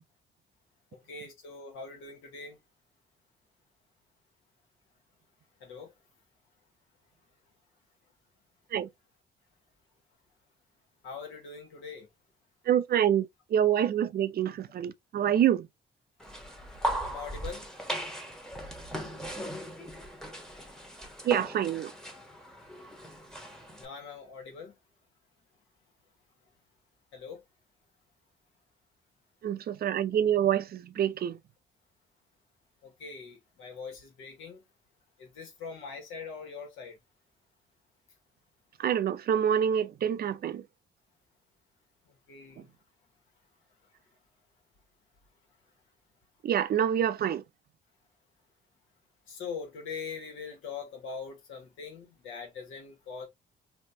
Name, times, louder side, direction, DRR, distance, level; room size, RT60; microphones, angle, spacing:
voice 1, 0.9-2.6 5.6-5.9 11.0-12.1 17.0-17.7 23.8-24.7 27.1-27.4 32.8-34.6 35.2-37.0 42.3-42.7 49.3-53.3, left 5 dB, 85° left, 1.6 m, -42 dB
voice 2, 12.7-15.6 21.3-21.9 29.4-31.4 38.8-40.6 46.4-47.4, right 9 dB, 50° right, 0.4 m, -26 dB
sound 1, 16.2-23.9, equal, 5° left, 1.1 m, -38 dB
3.3 x 2.8 x 2.7 m
cardioid pair, 90°, 20 cm